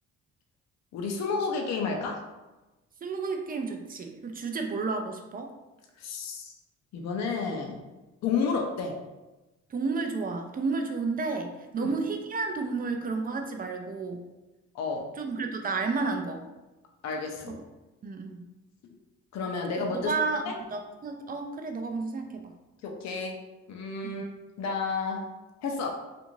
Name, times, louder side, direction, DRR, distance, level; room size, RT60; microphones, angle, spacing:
voice 1, 0.9-2.2 6.0-6.5 6.9-7.8 8.2-8.9 11.8-11.9 14.7-15.0 17.0-17.6 19.3-20.1 20.5-20.6 22.8-23.4 23.7-24.3 24.6-25.2 25.6-26.0, left 4 dB, 60° left, 1 dB, 0.6 m, -31 dB
voice 2, 3.0-5.5 9.7-14.2 15.2-16.4 17.5-17.6 18.0-18.4 19.9-20.4 20.7-22.4 24.0-24.2, right 4 dB, 30° right, 4 dB, 0.4 m, -31 dB
2.5 x 2.5 x 2.9 m, 1.1 s
cardioid pair, 90°, 30 cm